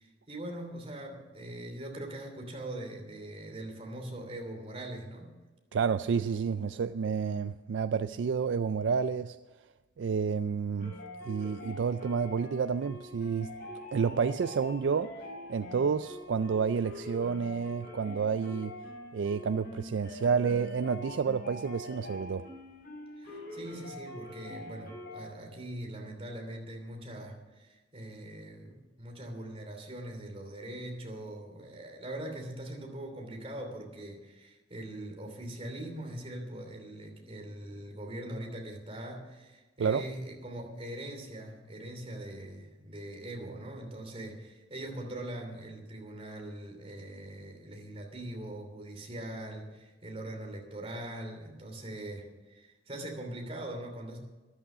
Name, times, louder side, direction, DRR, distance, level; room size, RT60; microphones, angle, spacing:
voice 1, 0.0-5.3 23.2-54.2, right 1 dB, 30° right, 2.9 m, -42 dB
voice 2, 5.7-9.4 10.0-11.0 11.2-13.5 13.9-15.1 15.5-18.8 19.1-22.5 39.8-40.0, right 6 dB, 75° right, 0.4 m, -30 dB
sound 1, 10.8-25.3, left 1 dB, 55° left, 5.6 m, -44 dB
13.5 x 11.5 x 6.1 m
head